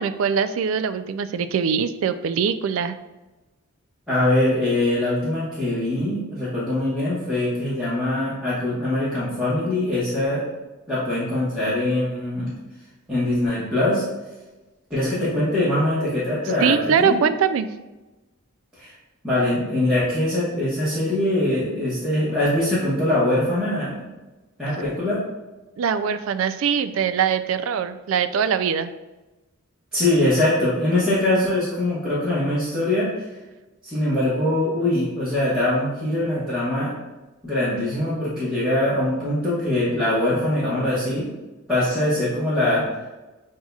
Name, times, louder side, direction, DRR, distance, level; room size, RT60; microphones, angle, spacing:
voice 1, 0.0-3.0 16.6-17.7 25.8-28.9, right 7 dB, 70° right, 11 dB, 0.3 m, -22 dB
voice 2, 4.1-10.4 10.9-12.5 13.1-14.0 14.9-17.2 18.8-18.9 19.2-24.0 24.6-25.2 29.9-33.1 33.8-36.9 37.4-41.3 41.7-42.9, left 1 dB, 5° right, -13 dB, 1.2 m, -22 dB
7.2 x 2.8 x 2.3 m, 1.1 s
head